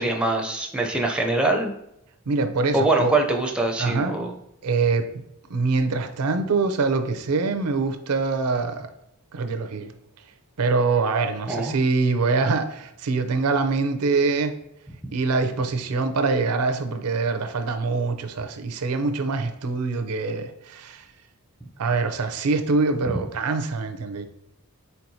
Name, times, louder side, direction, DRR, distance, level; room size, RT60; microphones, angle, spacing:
voice 1, 0.0-1.7 2.7-4.3 11.5-11.7, right 2 dB, 5° right, 0.5 m, -23 dB
voice 2, 2.3-3.2 3.8-4.2 4.6-8.9 9.3-9.9 10.6-14.6 15.1-21.0 21.8-24.2, right 4 dB, 90° right, 0.5 m, -24 dB
4.5 x 4.1 x 2.7 m
head